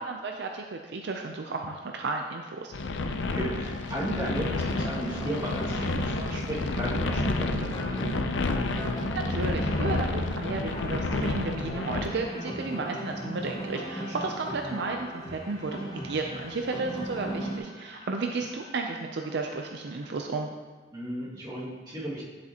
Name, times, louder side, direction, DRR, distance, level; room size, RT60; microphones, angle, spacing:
voice 1, 0.0-2.7 9.1-20.5, right 3 dB, 65° right, 3 dB, 0.5 m, -33 dB
sound 1, 2.7-12.1, left 3 dB, 90° left, 0.5 m, -30 dB
voice 2, 3.2-8.1 14.0-14.1 20.9-22.2, right 1 dB, 25° right, -7 dB, 2.1 m, -35 dB
sound 2, 4.2-17.6, right 1 dB, 20° left, 0.9 m, -37 dB
sound 3, 6.4-20.1, left 1 dB, 90° right, 2.5 m, -53 dB
9.7 x 7.6 x 2.9 m, 1.4 s
head